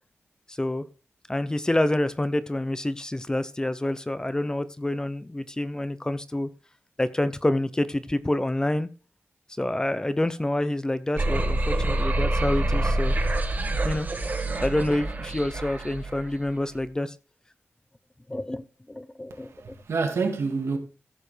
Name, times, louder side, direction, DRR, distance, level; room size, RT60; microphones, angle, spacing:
voice 1, 0.5-0.8 1.3-6.5 7.0-8.9 9.6-13.2 13.6-14.1 14.3-17.2 18.3-19.5, left 1 dB, 15° left, 0.6 m, -27 dB
sound 1, 11.2-16.3, right 2 dB, 40° right, 1.6 m, -26 dB
voice 2, 19.3-20.8, right 4 dB, 90° right, 2.0 m, -28 dB
15.0 x 6.8 x 3.3 m
wide cardioid pair, 125°, 5 cm